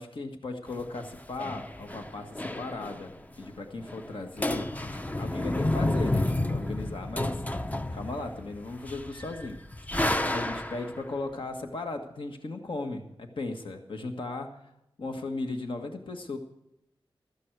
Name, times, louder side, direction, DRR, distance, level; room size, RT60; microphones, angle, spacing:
voice 1, 0.0-9.6 10.3-14.5 15.0-16.4, left 2 dB, 65° left, 4 dB, 1.6 m, -37 dB
sound 1, 0.7-3.2 3.5-3.6 3.8-4.1 4.4-11.0, left 1 dB, 15° left, 0.6 m, -31 dB
15.5 x 13.0 x 4.7 m, 0.80 s
wide cardioid pair, 65°, 9 cm